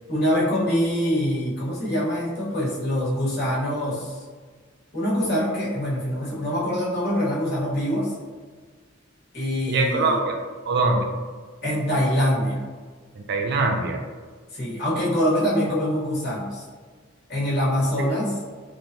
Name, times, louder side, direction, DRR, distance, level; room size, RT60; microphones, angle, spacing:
voice 1, 0.1-4.2 4.9-8.1 9.3-10.2 11.6-12.6 14.5-16.6 17.3-18.4, equal, 55° left, -8 dB, 1.0 m, -24 dB
voice 2, 9.7-10.4 10.7-11.1 13.2-14.0 18.0-18.1, right 3 dB, 55° right, 3 dB, 0.3 m, -23 dB
3.1 x 2.1 x 2.6 m, 1.5 s
head